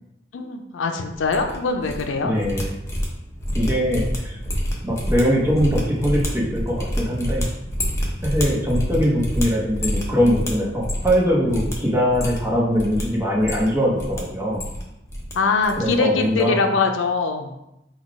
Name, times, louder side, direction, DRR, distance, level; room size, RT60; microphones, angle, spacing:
voice 1, 0.3-2.3 15.3-17.5, left 4 dB, 80° left, 5 dB, 0.5 m, -22 dB
sound 1, 1.1-2.0 2.3-11.2 11.5-11.7 12.1-13.0 13.4-14.2 14.5-15.3 15.6-15.9 16.2-16.4, equal, 15° left, 0.7 m, -27 dB
voice 2, 2.2-2.7 3.5-4.4 4.8-7.5 8.2-14.7 15.8-16.6, equal, 15° right, -4 dB, 0.9 m, -22 dB
3.9 x 2.3 x 4.6 m, 0.87 s
head